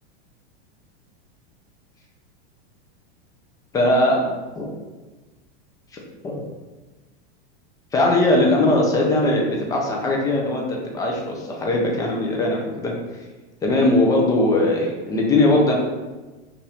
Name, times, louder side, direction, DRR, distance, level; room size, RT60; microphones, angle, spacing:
voice 1, 3.7-4.2 4.5-4.7 6.2-6.4 7.9-12.9 13.6-15.7, left 2 dB, 10° left, -1 dB, 0.5 m, -20 dB
5.6 x 2.6 x 3.4 m, 1.2 s
supercardioid pair, 155°, 32 cm